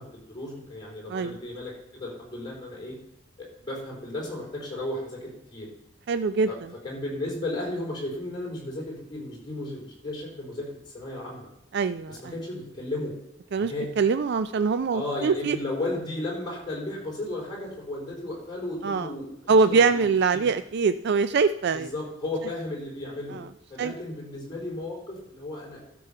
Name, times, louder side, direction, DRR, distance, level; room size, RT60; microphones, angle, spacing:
voice 1, 0.0-3.0 3.4-5.7 6.5-6.6 6.8-11.5 12.1-13.2 13.6-13.9 14.9-20.1 20.3-20.4 21.7-23.4 23.7-25.8, left 2 dB, 20° left, -4 dB, 4.3 m, -34 dB
voice 2, 6.1-6.5 11.7-12.2 13.5-15.6 18.8-19.1 19.5-21.9 23.3-23.4 23.8-23.9, right 5 dB, 55° right, 11 dB, 0.4 m, -23 dB
12.0 x 7.0 x 5.7 m, 0.88 s
head